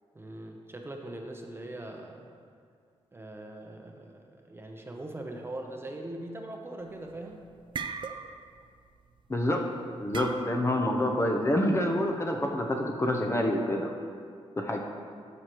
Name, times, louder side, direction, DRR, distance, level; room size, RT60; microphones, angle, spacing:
voice 1, 0.1-2.3 3.1-7.5, right 1 dB, 20° right, 2 dB, 0.8 m, -41 dB
sound 1, 6.9-7.2 7.5-8.6 8.9-9.1 10.1-10.8, right 5 dB, 50° right, 0.4 m, -38 dB
voice 2, 9.3-9.6 10.0-13.9 14.6-14.8, left 1 dB, 25° left, 1 dB, 0.8 m, -27 dB
12.0 x 6.5 x 3.0 m, 2.2 s
wide cardioid pair, 115°, 11 cm